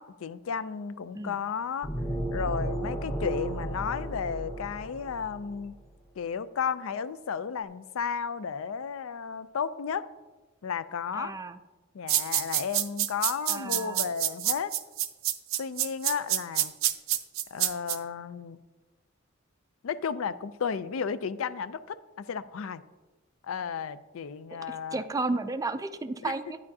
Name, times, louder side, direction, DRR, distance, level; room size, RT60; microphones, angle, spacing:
voice 1, 0.0-1.9 2.3-5.8 6.2-10.1 10.6-11.3 11.9-14.7 15.6-16.7 17.5-18.6 19.8-22.8 23.4-25.1 26.2-26.3, left 6 dB, 70° left, 14 dB, 0.4 m, -33 dB
sound 1, 1.8-5.5, right 1 dB, 30° left, 1.9 m, -34 dB
voice 2, 11.1-11.6 13.5-14.1 24.7-26.6, right 3 dB, 15° right, 10 dB, 0.3 m, -33 dB
sound 2, 12.1-18.0, right 12 dB, 70° right, 0.6 m, -27 dB
12.0 x 9.5 x 2.7 m, 1.2 s
head